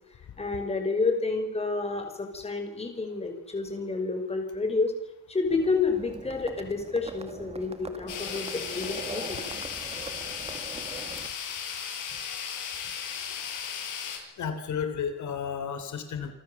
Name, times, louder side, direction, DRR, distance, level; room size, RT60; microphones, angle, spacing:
voice 1, 0.4-4.9 5.3-9.4, left 4 dB, 20° left, 5 dB, 5.7 m, -29 dB
Livestock farm animals working animals, 5.5-11.3, right 3 dB, 20° right, 2.1 m, -42 dB
sound 1, 8.1-14.2, left 7 dB, 85° left, 6.7 m, -36 dB
voice 2, 13.5-14.0 14.4-16.3, left 7 dB, 70° left, 8 dB, 3.5 m, -33 dB
28.5 x 24.5 x 7.2 m, 0.86 s
wide cardioid pair, 175°, 30 cm